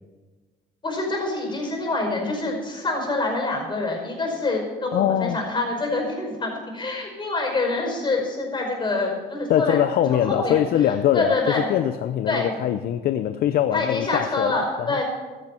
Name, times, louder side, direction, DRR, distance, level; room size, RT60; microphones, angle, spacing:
voice 1, 0.8-10.6 11.1-11.7 12.3-12.5 13.7-15.0, left 2 dB, 30° left, 1 dB, 5.4 m, -26 dB
voice 2, 4.9-5.4 9.5-15.0, left 11 dB, 65° left, 11 dB, 0.6 m, -23 dB
15.5 x 13.0 x 4.5 m, 1.3 s
cardioid pair, 110°, 17 cm